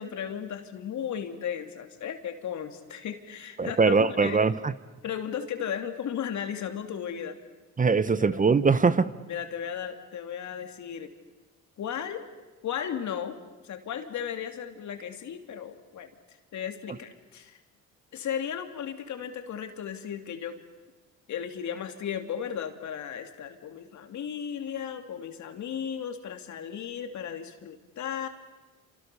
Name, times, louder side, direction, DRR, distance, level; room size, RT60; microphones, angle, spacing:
voice 1, 0.0-4.4 5.0-7.4 8.2-8.3 9.3-11.1 11.8-12.2 12.6-13.4 13.6-17.6 18.1-20.6 21.3-28.3, left 8 dB, 70° left, 7 dB, 2.9 m, -35 dB
voice 2, 3.6-4.7 7.8-9.1, right 4 dB, 25° right, 15 dB, 1.0 m, -22 dB
28.5 x 27.0 x 7.0 m, 1.2 s
cardioid pair, 90°, 30 cm